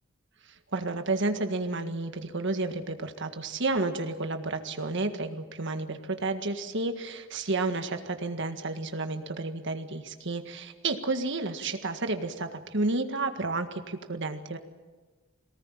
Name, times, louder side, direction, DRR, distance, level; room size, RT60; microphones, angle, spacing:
voice 1, 0.7-14.6, right 3 dB, 65° right, 7 dB, 1.8 m, -31 dB
22.5 x 19.0 x 8.9 m, 1.3 s
head